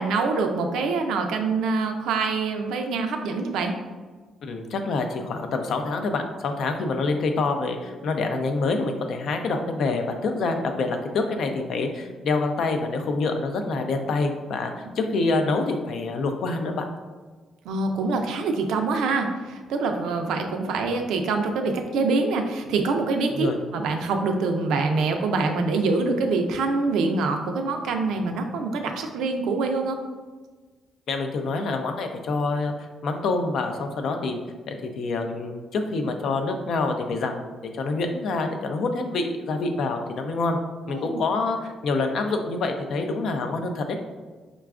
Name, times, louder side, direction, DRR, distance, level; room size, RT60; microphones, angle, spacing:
voice 1, 0.0-3.7 17.7-30.0 40.9-41.2, right 3 dB, 85° right, 5 dB, 0.4 m, -25 dB
voice 2, 4.4-16.9 23.3-23.6 31.1-32.7 33.0-34.4 34.7-40.6 40.9-43.8, left 3 dB, 70° left, 5 dB, 0.4 m, -26 dB
4.9 x 2.2 x 2.3 m, 1.4 s
cardioid pair, 90°, 0 cm